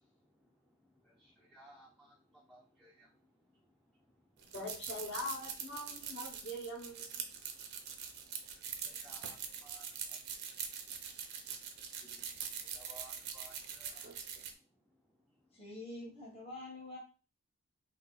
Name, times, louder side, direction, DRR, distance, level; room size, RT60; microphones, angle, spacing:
voice 1, 1.0-2.2 2.5-3.1 8.5-10.5 12.0-12.2 12.7-14.1, right 1 dB, ahead, 0.4 m, -60 dB
sound 1, 4.4-14.5, right 7 dB, 50° right, 0.5 m, -43 dB
voice 2, 4.5-7.2, left 1 dB, 55° left, 1.1 m, -42 dB
voice 3, 15.5-17.0, left 2 dB, 30° left, 1.0 m, -46 dB
2.8 x 2.8 x 3.8 m
head